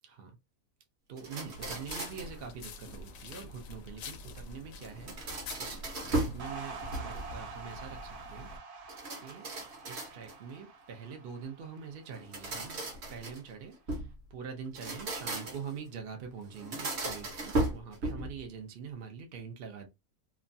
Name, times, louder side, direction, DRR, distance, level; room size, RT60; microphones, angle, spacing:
voice 1, 1.1-5.8 6.1-8.8 9.2-12.8 13.1-14.0 14.3-19.9, right 6 dB, 65° right, 0.5 m, -44 dB
sound 1, 1.2-2.4 4.8-6.4 6.8-7.4 8.9-10.5 12.1-14.1 14.6-15.8 16.5-18.4, right 2 dB, 50° right, 1.0 m, -36 dB
sound 2, 1.5-8.6, left 3 dB, 70° left, 0.9 m, -47 dB
sound 3, 6.4-12.9, right 4 dB, 80° right, 1.3 m, -47 dB
2.9 x 2.3 x 2.6 m
omnidirectional pair, 1.6 m